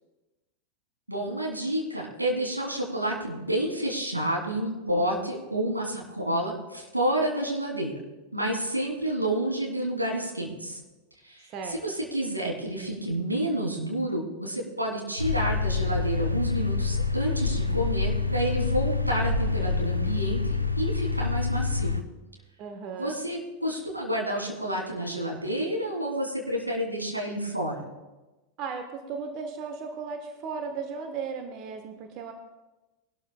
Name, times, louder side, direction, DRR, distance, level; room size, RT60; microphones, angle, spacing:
voice 1, 1.1-8.0 8.3-10.8 11.2-21.9 23.0-27.8, right 1 dB, 85° right, -2 dB, 3.2 m, -29 dB
sound 1, 15.2-22.0, left 4 dB, 90° left, 0.6 m, -27 dB
voice 2, 22.6-23.2 28.6-32.3, right 5 dB, 40° right, 6 dB, 1.2 m, -36 dB
20.0 x 12.5 x 2.3 m, 1.1 s
figure-of-eight pair, 90°, 0 cm